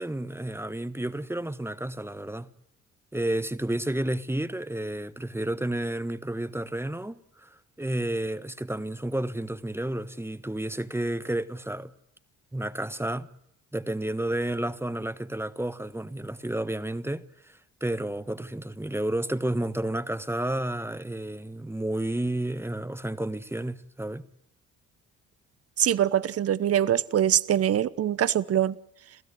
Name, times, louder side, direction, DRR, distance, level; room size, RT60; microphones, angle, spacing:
voice 1, 0.0-2.5 3.1-11.9 12.5-13.3 13.7-24.3, right 1 dB, 10° right, 1.2 m, -31 dB
voice 2, 25.8-28.7, right 10 dB, 50° right, 1.0 m, -23 dB
28.0 x 15.5 x 9.6 m
cardioid pair, 90°, 30 cm